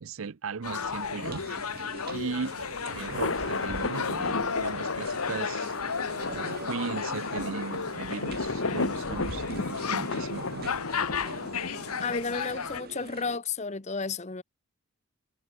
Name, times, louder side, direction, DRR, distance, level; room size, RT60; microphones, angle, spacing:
voice 1, 0.0-1.5 2.1-2.6 2.9-5.7 6.3-10.8, right 5 dB, 65° right, 0.6 m, -37 dB
sound 1, 0.6-12.8, left 6 dB, 90° left, 1.2 m, -35 dB
sound 2, 0.7-13.4, right 2 dB, 45° right, 3.0 m, -43 dB
sound 3, 2.2-12.6, left 3 dB, 65° left, 1.4 m, -34 dB
voice 2, 12.0-14.4, left 4 dB, 30° left, 0.9 m, -32 dB
head